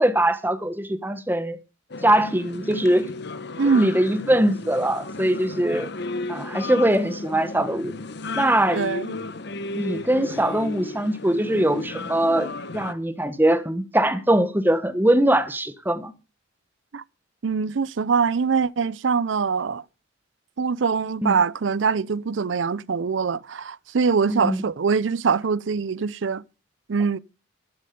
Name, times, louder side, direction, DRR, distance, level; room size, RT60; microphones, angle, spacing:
voice 1, 0.0-1.6 2.0-3.1 3.7-5.9 6.3-7.9 8.4-8.8 9.7-16.1 21.2-21.4 24.3-24.6, right 1 dB, 10° right, 1.2 m, -22 dB
sound 1, 1.9-12.9, left 3 dB, 60° left, 1.0 m, -34 dB
voice 2, 3.6-4.0 8.7-9.1 16.9-17.0 17.4-19.8 20.6-26.4 26.9-27.2, right 5 dB, 70° right, 0.5 m, -23 dB
12.0 x 9.9 x 5.2 m
head